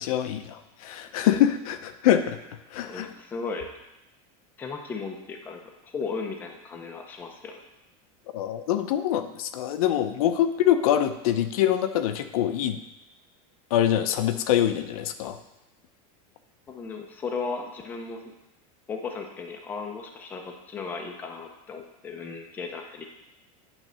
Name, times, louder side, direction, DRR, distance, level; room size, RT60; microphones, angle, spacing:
voice 1, 0.0-2.4 2.7-3.1 8.3-12.8 13.7-15.4, left 11 dB, 70° left, 9 dB, 0.6 m, -24 dB
voice 2, 2.8-3.7 4.6-7.6 16.7-18.3 18.9-23.0, left 4 dB, 10° left, 2 dB, 0.5 m, -36 dB
9.0 x 3.3 x 6.2 m, 0.92 s
supercardioid pair, 180°, 19 cm